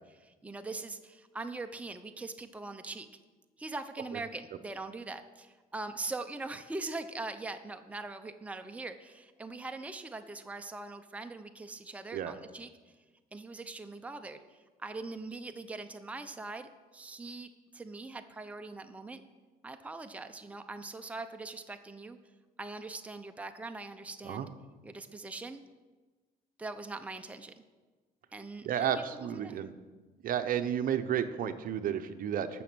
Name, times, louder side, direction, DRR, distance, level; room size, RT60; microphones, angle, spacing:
voice 1, 0.2-3.1 3.6-12.7 13.3-19.2 19.6-22.2 22.6-24.5 24.8-25.6 26.6-27.5 28.3-29.0 29.3-29.6, right 3 dB, 10° right, 7 dB, 0.6 m, -42 dB
voice 2, 28.6-29.8 30.2-32.6, right 9 dB, 55° right, 10 dB, 0.8 m, -32 dB
14.0 x 6.1 x 6.1 m, 1.3 s
cardioid pair, 110°, 17 cm